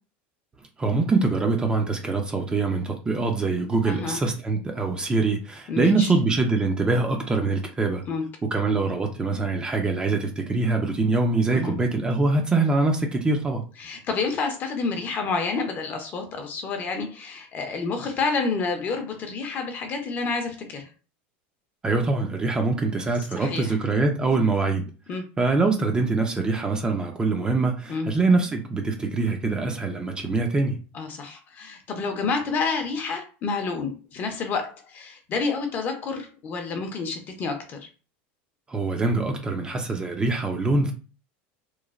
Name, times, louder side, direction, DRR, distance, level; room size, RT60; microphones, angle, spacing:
voice 1, 0.8-8.0 8.5-13.6 21.8-24.8 25.4-30.8 38.7-40.9, right 3 dB, 15° right, 0.4 m, -24 dB
voice 2, 3.8-4.2 5.7-6.1 8.1-8.2 11.5-11.8 13.8-20.9 23.4-23.7 25.1-25.2 27.9-28.1 30.9-37.9, left 4 dB, 35° left, 0.6 m, -29 dB
3.0 x 2.1 x 2.4 m
supercardioid pair, 140°, 6 cm